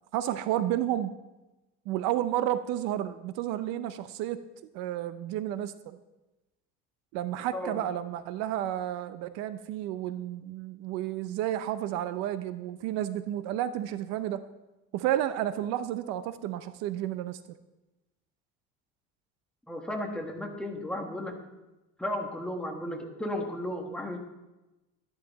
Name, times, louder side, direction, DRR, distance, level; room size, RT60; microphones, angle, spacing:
voice 1, 0.1-1.1 1.9-4.4 4.7-6.0 7.1-14.4 14.9-17.4, right 12 dB, 65° right, 12 dB, 0.7 m, -31 dB
voice 2, 19.7-21.3 22.0-24.2, left 1 dB, 5° left, 1 dB, 1.3 m, -34 dB
13.0 x 11.0 x 4.0 m, 1.0 s
cardioid pair, 150°, 29 cm